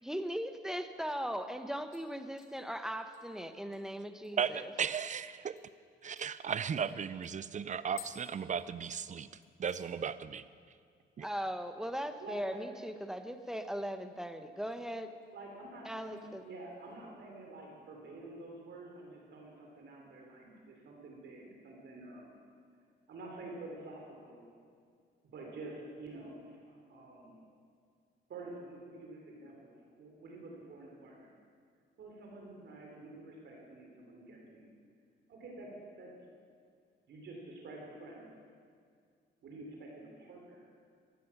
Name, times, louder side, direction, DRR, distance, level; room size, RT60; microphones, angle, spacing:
voice 1, 0.0-4.7 11.2-15.1 15.8-16.4, equal, 5° right, 8 dB, 0.9 m, -39 dB
sound 1, 1.9-4.8 5.1-5.2 5.6-5.7 6.2-9.2 9.4-9.9 10.3-10.7 10.9-11.0 13.1-13.8 14.1-14.8 15.2-15.5 16.1-17.0 17.3-17.4, left 8 dB, 85° left, 2.3 m, -58 dB
voice 2, 4.4-5.6 6.0-9.3 9.6-10.4 11.2-11.3, right 7 dB, 40° right, 15 dB, 0.5 m, -35 dB
voice 3, 12.2-12.6 15.3-22.3 23.1-24.5 25.2-27.3 28.3-31.3 32.0-34.7 35.3-35.7 36.0-36.1 37.1-38.3 39.4-40.7, right 2 dB, 65° right, -1 dB, 3.1 m, -48 dB
14.5 x 11.5 x 6.0 m, 2.2 s
cardioid pair, 90°, 20 cm